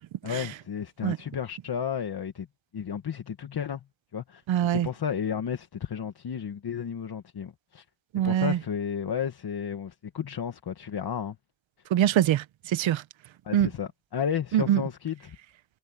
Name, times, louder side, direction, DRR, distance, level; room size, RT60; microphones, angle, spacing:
voice 1, 0.2-2.5 2.7-3.8 4.1-4.4 4.7-7.8 8.2-11.4 13.5-15.4, left 8 dB, 55° left, 1.8 m, -32 dB
voice 2, 4.5-4.9 8.1-8.6 11.9-13.0 13.5-13.7 14.5-14.8, right 11 dB, 80° right, 0.9 m, -23 dB
wide cardioid pair, 115°, 46 cm